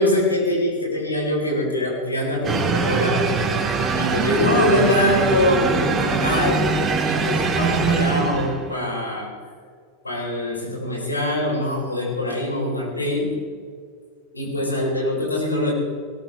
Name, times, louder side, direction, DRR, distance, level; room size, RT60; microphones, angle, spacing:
voice 1, 0.0-3.3 4.0-6.7 7.0-9.3 10.0-13.4 14.3-15.7, left 1 dB, 90° left, -2 dB, 4.5 m, -23 dB
sound 1, 2.4-8.7, right 5 dB, 25° right, 2.7 m, -22 dB
19.5 x 19.0 x 3.5 m, 2.1 s
figure-of-eight pair, 90°, 0 cm